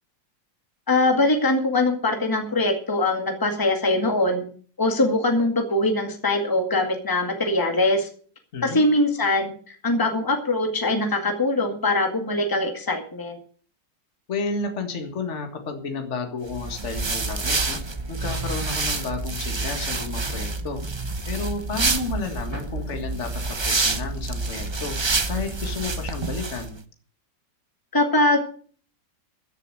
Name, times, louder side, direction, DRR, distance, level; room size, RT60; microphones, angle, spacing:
voice 1, 0.9-4.4 4.8-8.1 8.6-13.4 27.9-28.4, left 2 dB, 10° left, 4 dB, 2.1 m, -22 dB
voice 2, 14.3-17.8 18.1-20.8 21.3-25.0 25.3-26.8, left 4 dB, 40° left, 5 dB, 2.1 m, -31 dB
sound 1, 16.5-26.7, right 3 dB, 40° right, 0.3 m, -28 dB
14.5 x 6.9 x 7.7 m, 0.44 s
omnidirectional pair, 2.0 m